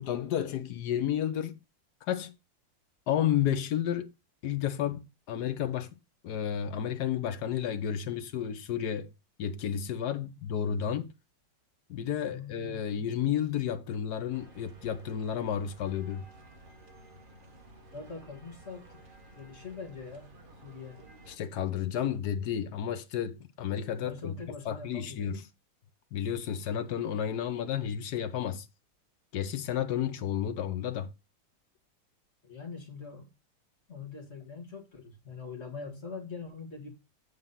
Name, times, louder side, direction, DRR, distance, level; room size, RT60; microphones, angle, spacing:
voice 1, 0.0-1.6 2.0-2.3 3.1-4.1 4.4-5.9 6.2-9.1 9.4-11.1 11.9-16.2 21.3-24.4 24.6-25.5 26.1-28.7 29.3-31.1, left 9 dB, 65° left, 1.3 m, -31 dB
voice 2, 12.2-12.9 17.9-19.0 19.3-21.1 24.0-25.3 32.4-33.3 33.9-36.9, left 4 dB, 35° left, 2.0 m, -43 dB
sound 1, 14.3-21.4, right 2 dB, 35° right, 1.0 m, -53 dB
8.1 x 3.9 x 5.5 m
omnidirectional pair, 2.0 m